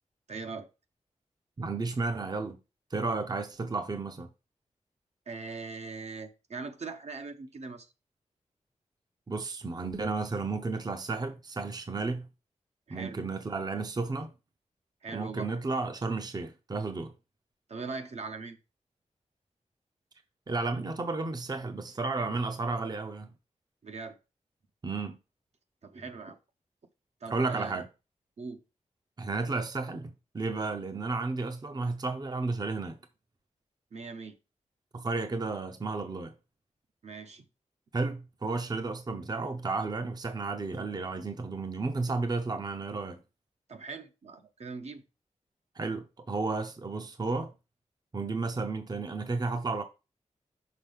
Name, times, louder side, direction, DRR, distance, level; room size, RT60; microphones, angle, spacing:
voice 1, 0.3-0.7 5.3-7.9 12.9-13.2 15.0-15.5 17.7-18.6 23.8-24.2 25.8-26.4 27.2-27.8 28.4-28.6 33.9-34.3 37.0-37.4 43.7-45.0, right 4 dB, 60° right, 0.9 m, -41 dB
voice 2, 1.6-2.6 2.9-4.3 9.3-12.3 12.9-14.3 15.1-17.1 20.5-23.3 24.8-25.2 27.3-27.9 29.2-33.0 34.9-36.3 37.9-43.2 45.8-47.5 48.1-49.8, right 3 dB, 35° right, 0.6 m, -32 dB
5.9 x 5.4 x 3.4 m
wide cardioid pair, 90°, 13 cm